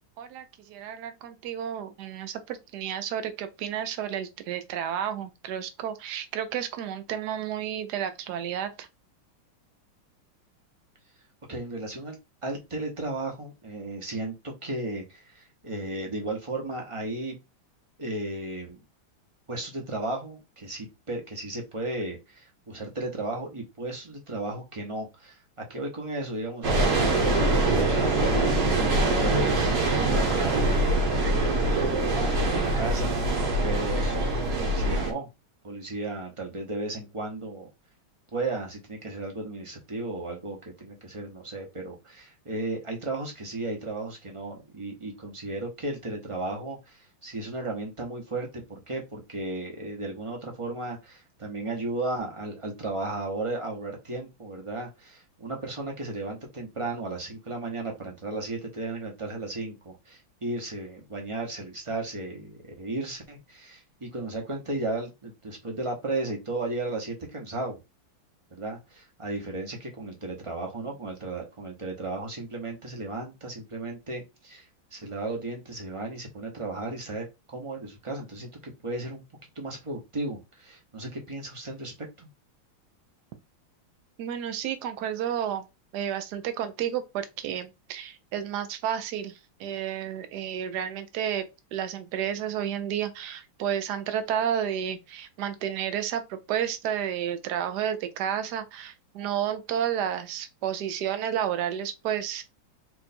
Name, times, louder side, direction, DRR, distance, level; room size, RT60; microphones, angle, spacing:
voice 1, 0.2-8.9 84.2-85.7 85.9-102.4, right 9 dB, 65° right, 1.1 m, -31 dB
voice 2, 11.5-17.4 18.0-18.8 19.5-29.8 30.1-31.8 32.4-34.2 34.6-35.3 35.6-37.7 38.3-67.8 68.5-79.2 79.5-82.3, right 2 dB, 20° right, 0.8 m, -35 dB
sound 1, 26.6-35.1, right 2 dB, 50° right, 1.6 m, -24 dB
4.5 x 2.6 x 4.3 m
omnidirectional pair, 2.2 m